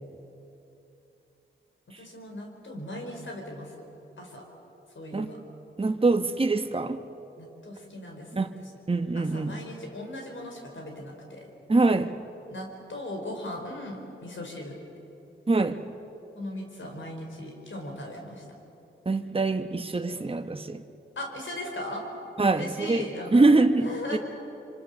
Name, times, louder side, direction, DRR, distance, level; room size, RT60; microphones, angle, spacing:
voice 1, 2.0-3.9 4.2-4.5 4.9-5.4 7.4-8.7 9.1-11.5 12.5-14.7 16.3-18.4 21.1-22.0 22.5-23.5 23.8-24.2, left 1 dB, 65° left, 2 dB, 5.1 m, -38 dB
voice 2, 5.8-7.0 8.3-8.5 8.9-9.6 11.7-12.1 15.5-15.8 19.0-20.8 22.4-23.0 23.3-24.2, right 3 dB, 25° right, 7 dB, 1.1 m, -24 dB
26.0 x 24.5 x 6.9 m, 3.0 s
cardioid pair, 50°, 21 cm